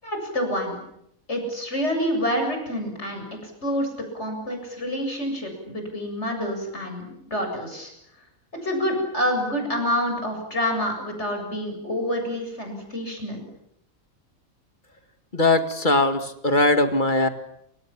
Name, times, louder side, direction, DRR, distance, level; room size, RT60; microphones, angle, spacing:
voice 1, 0.0-0.8 1.3-3.9 4.1-7.9 8.6-13.4, equal, 55° left, 4 dB, 7.9 m, -27 dB
voice 2, 15.3-17.3, left 2 dB, 35° left, 8 dB, 2.4 m, -20 dB
28.0 x 26.5 x 7.4 m, 0.75 s
omnidirectional pair, 1.4 m